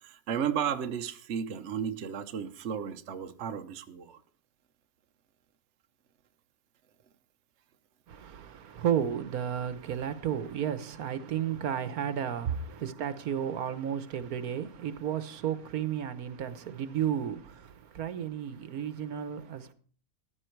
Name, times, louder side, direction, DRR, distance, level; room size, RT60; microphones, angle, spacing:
voice 1, 0.0-4.2, right 8 dB, 55° right, 1.0 m, -34 dB
voice 2, 8.1-19.7, right 9 dB, 75° right, 1.4 m, -33 dB
14.5 x 10.5 x 4.6 m
omnidirectional pair, 1.6 m